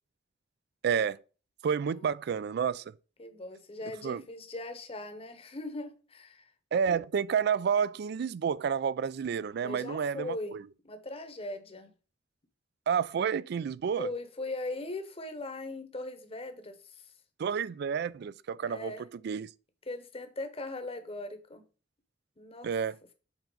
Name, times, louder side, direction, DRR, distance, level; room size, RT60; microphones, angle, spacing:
voice 1, 0.8-1.2 1.6-2.8 4.0-4.2 6.7-10.6 12.9-14.1 17.4-19.5 22.6-23.0, right 7 dB, 60° right, 0.3 m, -30 dB
voice 2, 3.2-6.5 9.6-10.5 10.8-11.9 14.0-17.1 18.6-19.0 19.9-21.6 22.4-22.7, left 2 dB, 30° left, 0.9 m, -39 dB
7.1 x 4.4 x 3.9 m
head